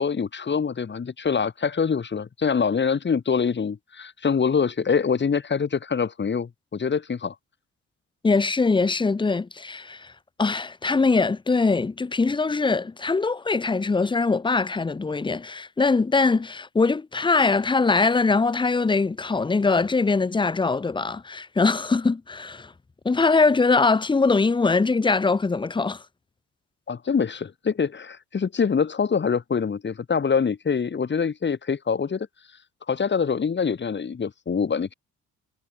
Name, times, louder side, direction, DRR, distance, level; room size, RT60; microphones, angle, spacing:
voice 1, 0.0-7.3 26.9-32.3 32.9-34.9, left 6 dB, 35° left, 2.8 m, -25 dB
voice 2, 8.2-10.1 10.4-22.7 23.0-26.0, left 4 dB, 15° left, 0.7 m, -22 dB
cardioid pair, 90°, 30 cm